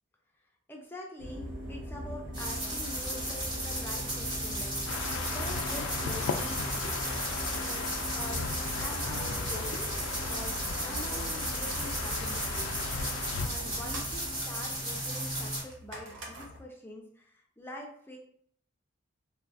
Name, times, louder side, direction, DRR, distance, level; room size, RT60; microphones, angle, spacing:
voice 1, 0.7-7.0 7.6-8.5 8.8-9.9 10.3-12.7 13.4-18.2, left 1 dB, 10° left, 0 dB, 0.5 m, -45 dB
sound 1, 1.2-16.6, equal, 65° right, 0.8 m, -41 dB
sound 2, 2.3-15.6, right 1 dB, 20° right, 0.9 m, -35 dB
sound 3, 4.9-13.5, left 5 dB, 80° left, 0.3 m, -37 dB
3.0 x 2.4 x 2.4 m, 0.63 s
head